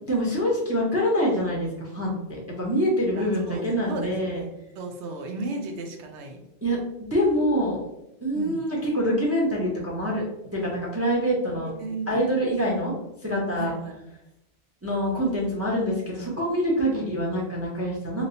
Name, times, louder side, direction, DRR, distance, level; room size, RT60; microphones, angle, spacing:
voice 1, 0.0-4.4 6.6-7.9 8.2-10.2 10.5-11.7 12.1-12.9 13.2-13.7 14.8-18.2, equal, 15° right, -4 dB, 0.6 m, -25 dB
voice 2, 3.2-6.4 8.3-8.6 11.5-12.1 13.6-14.0 16.9-17.1, right 3 dB, 90° right, 3 dB, 0.9 m, -35 dB
3.0 x 2.8 x 2.7 m, 0.85 s
omnidirectional pair, 1.1 m